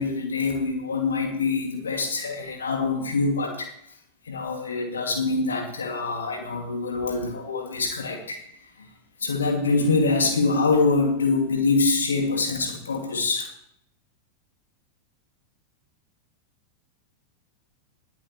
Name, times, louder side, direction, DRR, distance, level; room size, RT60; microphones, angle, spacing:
voice 1, 0.0-3.7 4.3-8.4 8.8-8.9 9.2-13.5, left 3 dB, 70° left, 3 dB, 2.5 m, -24 dB
20.5 x 8.5 x 3.2 m, 0.71 s
figure-of-eight pair, 90°, 0 cm